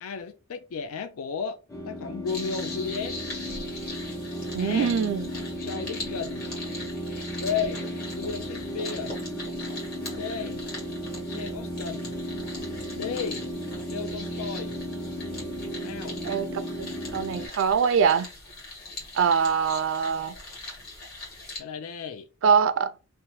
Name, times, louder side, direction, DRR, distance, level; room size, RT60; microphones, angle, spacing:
voice 1, 0.0-1.6 1.8-3.2 4.6-5.0 5.6-6.5 7.4-7.9 8.1-9.1 10.1-10.6 11.3-12.1 12.9-13.4 13.9-14.7 15.8-16.2 21.6-22.3, left 6 dB, 75° left, 0.4 m, -34 dB
sound 1, 1.7-17.5, equal, 15° left, 0.5 m, -35 dB
sound 2, 2.3-21.6, left 2 dB, 45° left, 1.4 m, -41 dB
voice 2, 4.5-5.3 16.2-16.9 17.1-18.3 19.1-20.3 22.4-22.9, right 6 dB, 60° right, 0.3 m, -23 dB
2.8 x 2.1 x 3.0 m
head